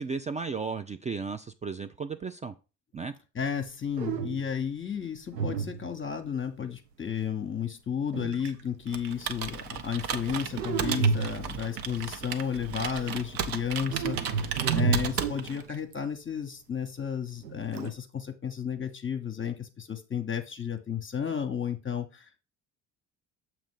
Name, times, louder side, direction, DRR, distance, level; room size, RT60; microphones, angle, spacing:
voice 1, 0.0-2.5 2.9-3.1, right 5 dB, 15° right, 9 dB, 0.3 m, -34 dB
voice 2, 3.3-22.4, left 8 dB, 25° left, 6 dB, 1.0 m, -33 dB
sound 1, 3.6-3.7 4.0-4.6 5.3-6.2 8.1-8.6 10.6-11.7 13.8-15.9 17.4-17.9, right 5 dB, 90° right, 0.6 m, -30 dB
Computer keyboard, 8.9-15.7, right 7 dB, 45° right, 0.9 m, -35 dB
7.2 x 3.0 x 5.6 m, 0.31 s
figure-of-eight pair, 50°, 48 cm